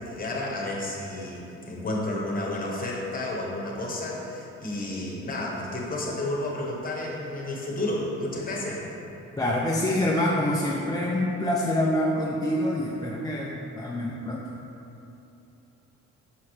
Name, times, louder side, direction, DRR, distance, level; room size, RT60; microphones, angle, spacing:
voice 1, 0.0-8.9, left 1 dB, 30° left, -2 dB, 1.2 m, -31 dB
voice 2, 9.4-14.5, left 1 dB, 15° left, -3 dB, 0.5 m, -26 dB
5.9 x 5.2 x 3.2 m, 2.9 s
cardioid pair, 90°, 30 cm